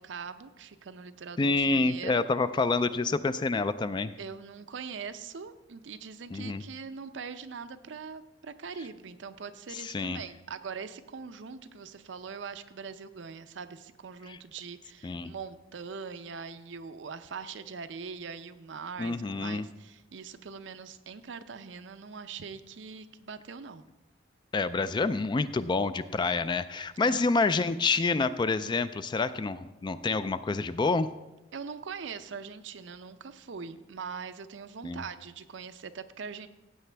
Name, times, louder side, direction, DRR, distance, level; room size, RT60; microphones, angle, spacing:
voice 1, 0.0-2.2 4.2-23.9 27.0-27.2 31.5-36.5, right 5 dB, 70° right, 11 dB, 0.5 m, -42 dB
voice 2, 1.4-4.1 6.3-6.6 9.7-10.2 14.3-14.4 15.0-15.3 19.0-19.7 24.5-31.1 34.8-35.0, left 3 dB, 25° left, 13 dB, 0.3 m, -28 dB
15.0 x 8.3 x 3.4 m, 1.0 s
head